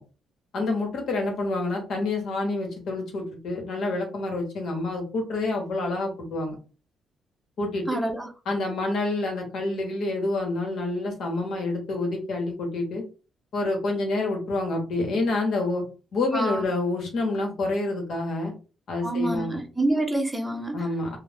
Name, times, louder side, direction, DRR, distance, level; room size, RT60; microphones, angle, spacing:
voice 1, 0.5-6.5 7.6-8.0 8.5-13.0 13.5-15.8 16.1-18.5 18.9-19.6 20.7-21.2, left 2 dB, 65° left, 1.1 m, -28 dB
voice 2, 7.9-8.3 16.3-16.6 19.0-20.9, right 2 dB, 10° right, 0.7 m, -27 dB
2.4 x 2.1 x 3.3 m
cardioid pair, 90°, 0 cm